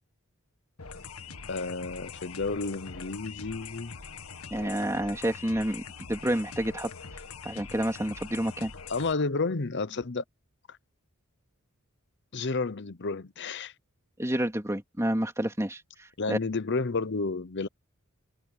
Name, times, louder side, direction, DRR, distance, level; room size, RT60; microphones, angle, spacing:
sound 1, 0.8-9.1, left 5 dB, 90° left, 2.0 m, -43 dB
voice 1, 1.5-4.0 8.9-10.2 10.7-10.8 12.3-13.7 16.2-17.7, left 3 dB, 55° left, 0.8 m, -31 dB
voice 2, 4.5-5.8 6.1-6.9 7.4-8.7 14.2-15.8 16.3-16.4, right 1 dB, 15° right, 2.6 m, -29 dB
head